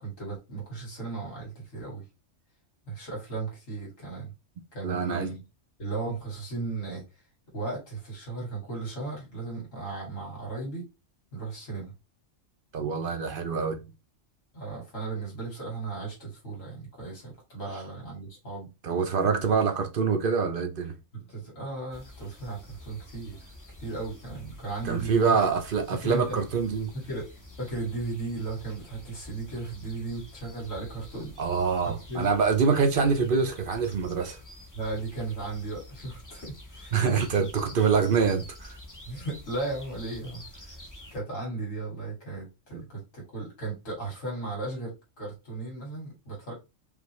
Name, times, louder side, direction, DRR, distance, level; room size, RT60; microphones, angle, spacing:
voice 1, 0.0-2.0 2.9-4.3 4.7-5.4 5.8-7.0 7.5-10.9 11.3-11.9 14.5-18.7 19.2-19.5 21.1-23.5 23.8-25.4 25.9-26.4 26.9-31.4 31.8-32.3 34.7-37.0 37.4-37.8 39.0-40.8 41.1-46.5, right 3 dB, 90° left, 2.8 m, -36 dB
voice 2, 4.8-5.3 12.7-13.8 18.8-20.9 24.8-26.9 31.4-34.4 36.9-38.8 42.7-42.8, right 5 dB, 50° right, 0.7 m, -25 dB
sound 1, 21.9-41.2, left 1 dB, 20° left, 0.8 m, -48 dB
5.1 x 2.6 x 3.0 m
omnidirectional pair, 1.3 m